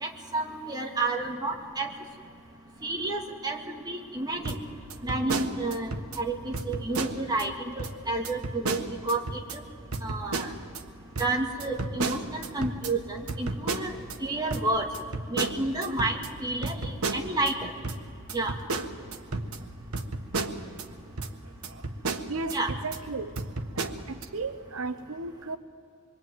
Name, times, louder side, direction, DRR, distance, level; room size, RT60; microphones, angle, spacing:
voice 1, 0.0-1.9 2.8-4.6 5.0-5.9 6.2-9.2 9.5-9.6 10.0-10.5 11.2-14.9 15.3-17.7 18.3-18.5 22.5-22.7, right 2 dB, 20° right, 1 dB, 2.2 m, -30 dB
sound 1, 4.5-6.2 6.5-7.5 7.8-8.0 8.2-9.6 9.9-10.8 11.2-14.2 14.5-17.5 17.8-20.9 21.2-21.3 21.6-23.0 23.4-24.2, right 3 dB, 85° right, 1.4 m, -33 dB
voice 2, 22.8-23.3 23.8-25.6, right 3 dB, 70° right, 10 dB, 0.8 m, -34 dB
25.5 x 23.0 x 9.4 m, 2.4 s
head